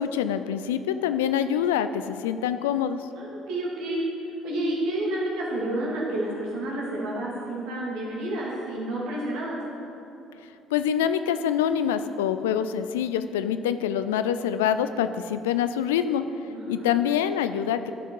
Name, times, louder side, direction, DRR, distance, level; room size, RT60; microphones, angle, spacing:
voice 1, 0.0-3.0 10.7-16.2 16.7-17.9, left 9 dB, 85° left, 11 dB, 0.3 m, -25 dB
voice 2, 3.1-4.0 4.4-9.6 16.5-17.0, right 1 dB, 75° right, -4 dB, 2.3 m, -30 dB
11.5 x 5.8 x 4.5 m, 2.8 s
hypercardioid pair, 60°, 0 cm